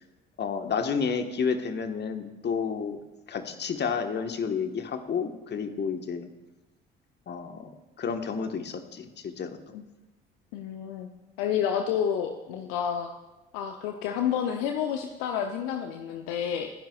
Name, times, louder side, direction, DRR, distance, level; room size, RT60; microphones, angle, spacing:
voice 1, 0.4-3.0 3.3-6.3 7.3-7.7 8.0-9.6, left 6 dB, 35° left, 7 dB, 1.5 m, -30 dB
voice 2, 10.5-11.1 11.4-13.1 13.5-16.7, left 8 dB, 65° left, 5 dB, 0.9 m, -29 dB
28.0 x 10.5 x 2.5 m, 1.1 s
figure-of-eight pair, 50°, 29 cm